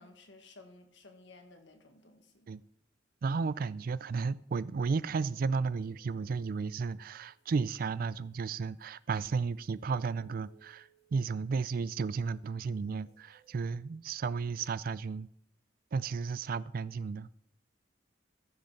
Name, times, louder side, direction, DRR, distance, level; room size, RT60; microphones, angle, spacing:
voice 1, 0.0-2.5, left 2 dB, 65° left, 1.5 m, -56 dB
voice 2, 3.2-15.3 15.9-17.3, right 5 dB, 50° right, 0.3 m, -33 dB
sound 1, 5.0-13.5, right 5 dB, 40° left, 5.7 m, -69 dB
14.5 x 5.4 x 5.7 m
head